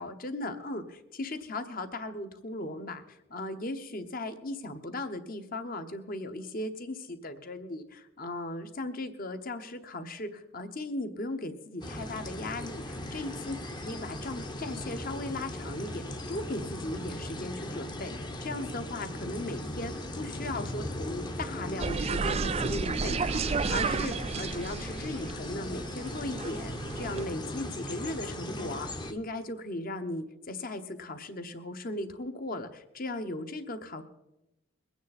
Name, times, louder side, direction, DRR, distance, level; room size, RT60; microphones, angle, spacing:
voice 1, 0.0-13.5 13.8-34.0, left 2 dB, 40° left, 8 dB, 1.0 m, -37 dB
sound 1, 11.8-29.1, left 1 dB, 20° left, 0.8 m, -38 dB
sound 2, 21.8-27.3, right 4 dB, 30° right, 0.4 m, -32 dB
22.0 x 9.4 x 4.3 m, 0.92 s
head